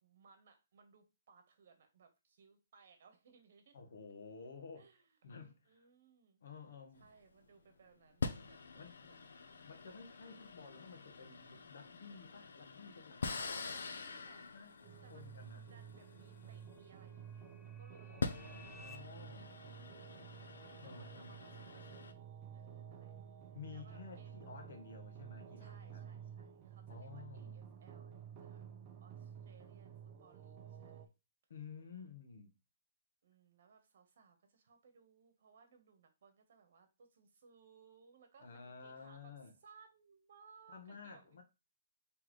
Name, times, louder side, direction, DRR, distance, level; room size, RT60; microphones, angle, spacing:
voice 1, 0.0-3.8 4.7-5.1 5.7-6.4 7.0-9.2 10.2-10.4 13.4-14.5 15.0-18.6 19.5-20.1 20.4-23.1 23.7-24.4 25.6-28.7 29.0-31.1 33.2-39.3 39.6-41.4, right 5 dB, 60° right, 1.2 m, -65 dB
voice 2, 3.7-4.9 5.2-5.9 6.4-7.1 8.8-9.0 9.6-13.8 14.5-14.7 15.1-15.6 18.1-19.6 20.8-21.6 23.5-26.1 26.9-27.6 31.5-32.5 38.4-39.5 40.7-41.4, left 5 dB, 70° left, 1.1 m, -53 dB
sound 1, 7.0-7.3 8.2-17.2 18.0-22.1, left 4 dB, 85° left, 0.6 m, -45 dB
sound 2, 14.7-19.0, left 4 dB, 10° left, 0.3 m, -62 dB
sound 3, 14.8-31.1, right 8 dB, 30° right, 0.6 m, -52 dB
4.0 x 3.3 x 3.1 m
hypercardioid pair, 160°, 0 cm